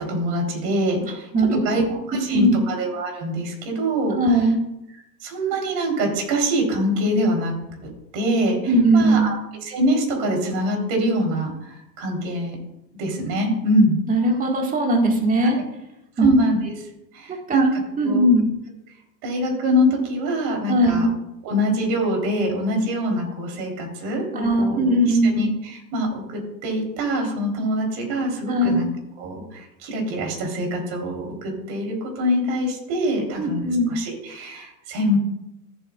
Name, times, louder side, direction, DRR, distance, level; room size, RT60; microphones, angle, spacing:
voice 1, 0.0-1.8 2.1-4.4 5.2-7.5 7.8-9.3 9.7-12.6 13.0-14.0 15.4-15.6 16.2-16.7 17.1-18.2 19.2-21.1 21.4-28.9 29.2-35.2, equal, 45° right, 1 dB, 3.9 m, -24 dB
voice 2, 1.0-1.6 2.3-2.6 4.1-4.6 8.7-9.3 14.1-15.6 16.2-16.3 17.5-17.7 18.0-18.5 20.7-21.1 24.4-25.4 28.5-28.8 33.4-34.0, right 1 dB, 15° right, 1 dB, 1.9 m, -19 dB
14.5 x 7.8 x 2.5 m, 0.87 s
hypercardioid pair, 105°, 49 cm